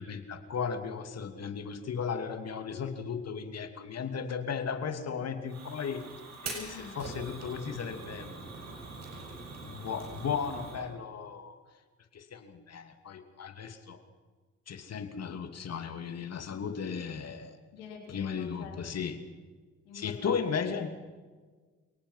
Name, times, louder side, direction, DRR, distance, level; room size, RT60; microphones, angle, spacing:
voice 1, 0.0-6.0 6.4-8.3 9.6-11.6 12.1-14.0 14.7-17.6 18.1-19.2 19.9-20.9, left 6 dB, 55° left, 7 dB, 2.8 m, -35 dB
Fire, 5.5-10.8, right 3 dB, 60° right, 6.9 m, -43 dB
voice 2, 6.5-7.0 17.7-18.8 19.9-20.4 20.7-20.8, left 6 dB, 90° left, 1 dB, 4.0 m, -46 dB
29.0 x 18.5 x 5.8 m, 1.4 s
supercardioid pair, 55°, 31 cm